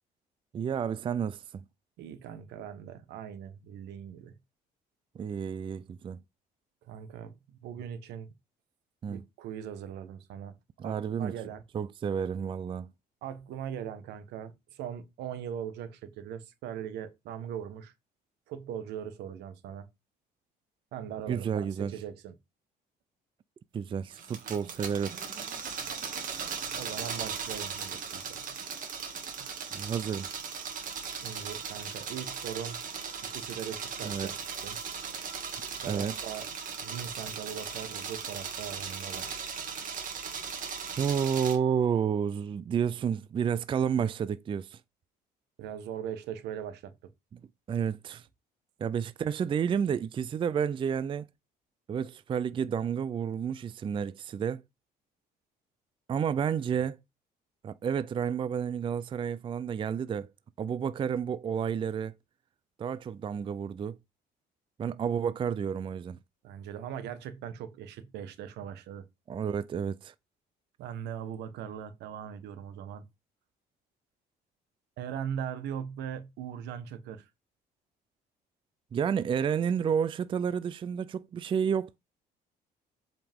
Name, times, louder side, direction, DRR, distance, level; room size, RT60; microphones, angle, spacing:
voice 1, 0.5-1.6 5.2-6.2 9.0-9.2 10.8-11.3 11.7-12.9 21.3-21.9 23.7-25.2 29.7-30.3 34.0-34.3 35.9-36.1 41.0-44.8 47.3-47.4 47.7-48.3 48.8-51.3 51.9-54.6 56.1-57.0 57.6-60.3 60.6-62.1 62.8-64.0 64.8-66.2 69.3-70.1 78.9-82.0, right 7 dB, 30° right, 0.4 m, -30 dB
voice 2, 2.0-4.4 6.8-8.3 9.1-10.6 10.8-11.6 13.2-17.9 18.5-19.9 20.9-22.3 26.3-28.4 31.2-32.8 33.3-34.3 34.6-34.8 35.8-36.5 36.8-39.3 45.6-46.9 66.4-69.0 70.8-73.1 75.0-77.3, right 9 dB, 80° right, 1.3 m, -40 dB
sound 1, 24.1-41.6, right 6 dB, 50° right, 2.2 m, -38 dB
7.7 x 5.1 x 3.6 m
cardioid pair, 110°, 17 cm